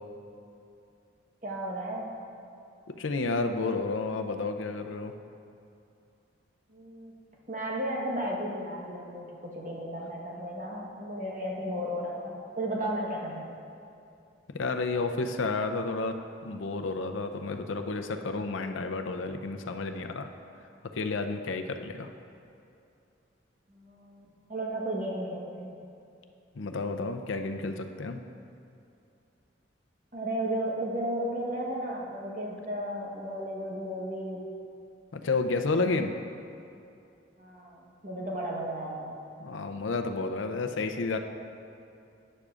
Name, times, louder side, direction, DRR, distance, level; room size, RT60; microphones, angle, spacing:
voice 1, 1.4-2.2 6.7-7.1 7.5-13.5 23.7-25.8 30.1-34.4 37.4-39.1, right 1 dB, 40° right, -2 dB, 1.2 m, -34 dB
voice 2, 2.9-5.1 14.5-16.2 16.4-20.3 20.9-22.1 26.6-28.2 35.1-36.1 39.4-41.2, left 3 dB, 90° left, 6 dB, 0.6 m, -31 dB
11.5 x 9.9 x 2.5 m, 2.6 s
head